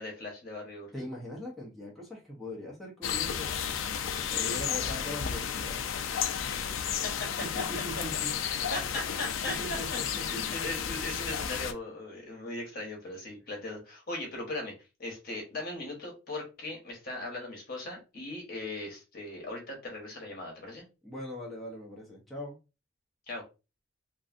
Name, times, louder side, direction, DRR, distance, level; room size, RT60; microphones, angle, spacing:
voice 1, 0.0-0.9 4.3-4.6 6.8-7.3 8.4-9.5 10.1-14.7 15.0-20.8 23.3-23.4, left 2 dB, 50° left, 0 dB, 1.1 m, -39 dB
voice 2, 0.9-3.7 4.3-5.9 7.4-8.3 9.5-10.4 21.0-22.6, left 1 dB, ahead, -4 dB, 0.8 m, -41 dB
sound 1, 3.0-11.7, left 8 dB, 85° left, 0.4 m, -32 dB
3.1 x 2.6 x 2.5 m, 0.29 s
head